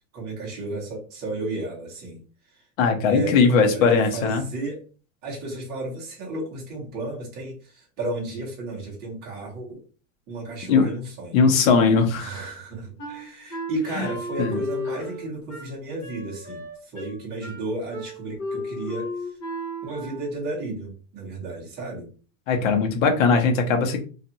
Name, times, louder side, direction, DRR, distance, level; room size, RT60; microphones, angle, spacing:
voice 1, 0.1-2.2 2.5-2.6 3.1-4.9 5.2-9.8 10.3-11.4 12.2-19.4 19.8-22.1, right 2 dB, 20° right, -3 dB, 0.9 m, -33 dB
voice 2, 2.8-4.4 10.7-10.9 11.3-12.4 14.0-14.1 14.4-14.6 22.5-24.0, left 5 dB, 65° left, 3 dB, 0.9 m, -19 dB
Wind instrument woodwind instrument, 13.0-20.4, left 1 dB, 25° left, 0.6 m, -34 dB
2.5 x 2.4 x 2.7 m, 0.37 s
supercardioid pair, 170°, 43 cm